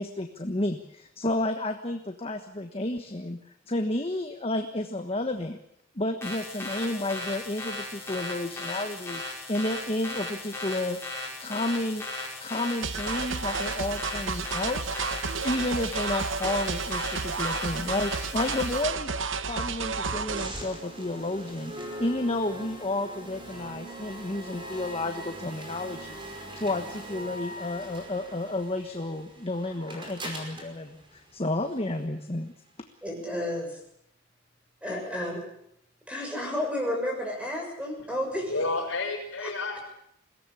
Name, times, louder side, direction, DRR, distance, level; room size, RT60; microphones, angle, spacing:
voice 1, 0.0-3.4 3.7-5.6 5.9-11.0 11.4-12.0 12.4-14.8 15.4-32.5, left 2 dB, 30° left, 5 dB, 1.3 m, -31 dB
sound 1, 6.2-18.8, left 2 dB, 15° left, 6.7 m, -37 dB
sound 2, 12.8-20.5, right 5 dB, 65° right, 0.9 m, -31 dB
sound 3, 20.1-32.0, right 1 dB, 25° right, 5.2 m, -42 dB
voice 2, 33.0-33.7 34.8-35.4 36.1-38.5 39.4-39.5, left 1 dB, 5° right, 1 dB, 6.9 m, -31 dB
voice 3, 38.0-39.8, left 3 dB, 70° left, 1 dB, 6.3 m, -31 dB
22.0 x 17.0 x 8.5 m, 0.75 s
head